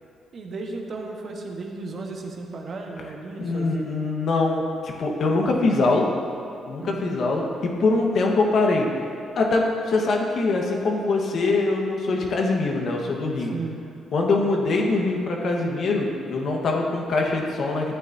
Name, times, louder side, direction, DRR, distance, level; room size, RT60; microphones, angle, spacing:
voice 1, 0.3-3.8 6.8-7.1 13.4-13.8, right 3 dB, 50° right, 1 dB, 1.3 m, -35 dB
voice 2, 3.4-6.1 6.7-8.9 9.3-13.5 14.1-18.0, left 3 dB, 60° left, 0 dB, 1.4 m, -23 dB
12.5 x 8.4 x 2.7 m, 2.5 s
cardioid pair, 90°, 0 cm